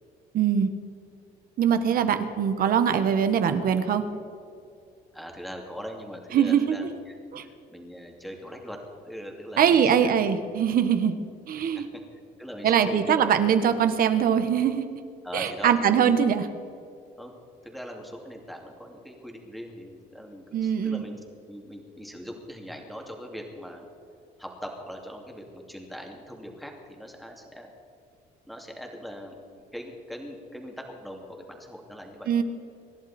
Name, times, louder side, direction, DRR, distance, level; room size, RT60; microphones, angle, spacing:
voice 1, 0.3-0.7 1.6-4.0 6.3-6.8 7.3-7.4 9.6-11.1 11.5-11.9 12.6-14.8 15.3-16.5 20.5-21.0 32.3-32.4, right 8 dB, 60° right, 9 dB, 1.3 m, -22 dB
voice 2, 5.1-10.1 11.7-11.8 12.1-13.4 15.2-16.0 17.2-17.3 17.6-21.1 21.5-23.9 24.4-27.7 28.5-29.3 29.7-32.4, equal, ahead, 1 dB, 2.6 m, -41 dB
25.5 x 11.0 x 4.4 m, 2.5 s
cardioid pair, 110°, 17 cm